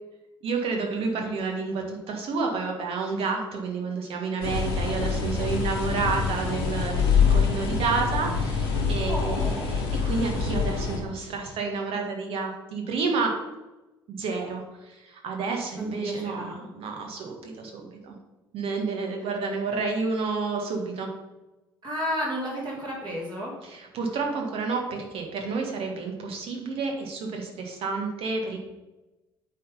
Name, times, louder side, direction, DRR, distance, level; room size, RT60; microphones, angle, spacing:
voice 1, 0.4-13.4 14.1-18.1 18.5-21.1 23.6-28.6, right 4 dB, 50° right, 2 dB, 1.6 m, -30 dB
sound 1, 4.4-11.0, left 5 dB, 75° left, 1.4 m, -25 dB
voice 2, 9.0-9.6 15.8-16.6 21.8-23.5, equal, 35° right, -4 dB, 2.9 m, -32 dB
8.5 x 3.9 x 5.3 m, 1.1 s
figure-of-eight pair, 55°, 12 cm